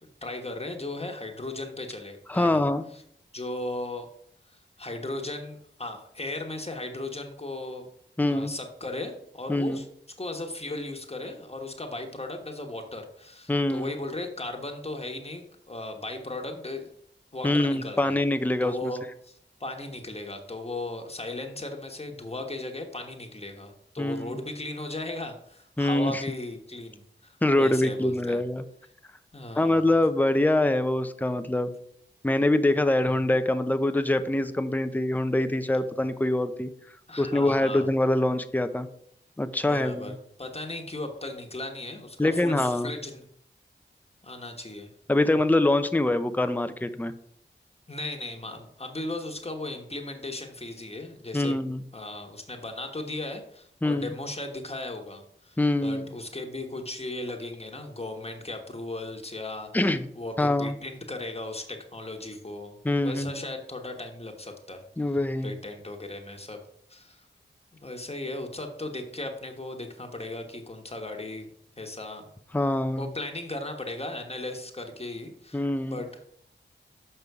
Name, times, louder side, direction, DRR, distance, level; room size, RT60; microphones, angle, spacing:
voice 1, 0.0-2.6 2.9-3.0 3.3-4.1 4.8-7.9 8.3-9.9 10.2-16.9 17.3-18.2 18.6-28.4 29.3-29.9 33.0-33.1 37.1-37.9 39.6-43.2 44.2-44.9 47.9-51.6 51.9-65.2 65.4-66.6 66.9-67.2 67.8-71.5 71.8-72.3 73.0-76.3, left 2 dB, 30° left, 3 dB, 1.3 m, -37 dB
voice 2, 2.3-2.8 8.2-8.5 9.5-9.8 13.5-13.9 17.4-18.9 24.0-24.3 25.8-26.2 27.4-28.6 29.6-31.7 32.2-36.7 37.2-38.9 39.4-40.2 42.2-42.9 45.1-47.1 51.3-51.8 53.8-54.1 55.6-56.1 59.7-60.1 60.4-60.7 62.8-63.4 65.0-65.5 72.5-73.1 75.5-76.0, left 1 dB, 10° left, 10 dB, 0.6 m, -24 dB
6.8 x 5.5 x 4.8 m, 0.69 s
cardioid pair, 50°, 19 cm